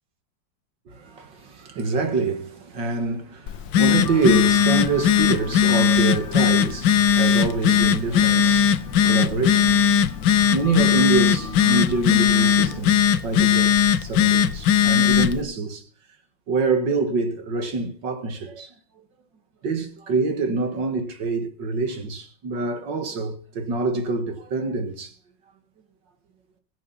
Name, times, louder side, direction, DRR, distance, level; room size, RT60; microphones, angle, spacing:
voice 1, 0.9-15.8 16.5-18.7 19.6-25.1, right 3 dB, 70° right, 2.5 m, -26 dB
Telephone, 3.5-15.4, left 8 dB, 75° left, 1.5 m, -19 dB
sound 1, 4.0-12.8, left 5 dB, 40° left, 1.5 m, -39 dB
21.0 x 7.6 x 5.7 m
omnidirectional pair, 2.0 m